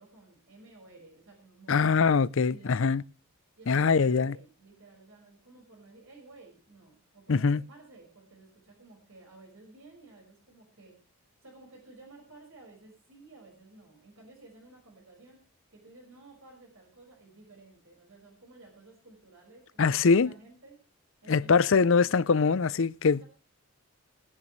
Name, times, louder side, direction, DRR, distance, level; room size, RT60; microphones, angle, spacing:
voice 1, 0.0-1.9 2.5-3.0 3.6-11.0 11.4-15.4 15.7-20.8 21.2-22.3, right 2 dB, 65° right, 5.3 m, -54 dB
voice 2, 1.7-3.0 3.7-4.3 7.3-7.6 19.8-20.3 21.3-23.2, left 5 dB, 60° left, 0.5 m, -23 dB
21.5 x 10.0 x 3.1 m
head